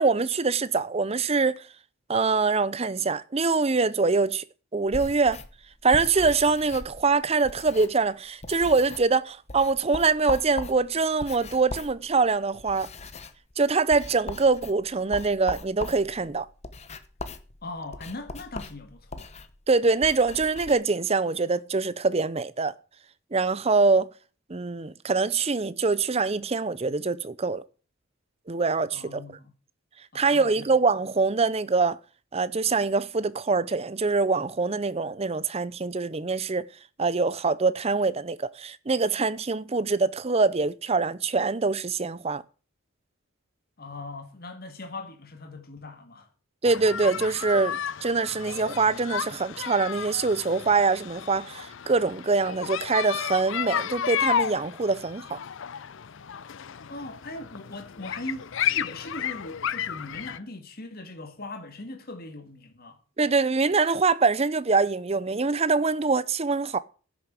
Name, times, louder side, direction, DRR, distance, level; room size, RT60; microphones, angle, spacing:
voice 1, 0.0-1.6 2.1-4.4 4.7-5.4 5.8-12.9 13.6-16.5 19.7-22.7 23.3-24.1 24.5-27.6 28.5-29.2 30.1-32.0 32.3-36.7 37.0-42.4 46.6-55.4 63.2-66.8, right 4 dB, 30° right, 0.6 m, -24 dB
sound 1, 4.9-8.1 8.4-9.2 9.5-20.7, left 3 dB, 30° left, 1.0 m, -40 dB
voice 2, 17.6-19.3 28.9-29.5 30.1-30.8 43.8-46.3 56.9-63.0, left 2 dB, 45° left, 2.0 m, -40 dB
sound 2, 46.6-60.4, left 8 dB, 60° left, 0.5 m, -32 dB
10.5 x 6.9 x 8.1 m
head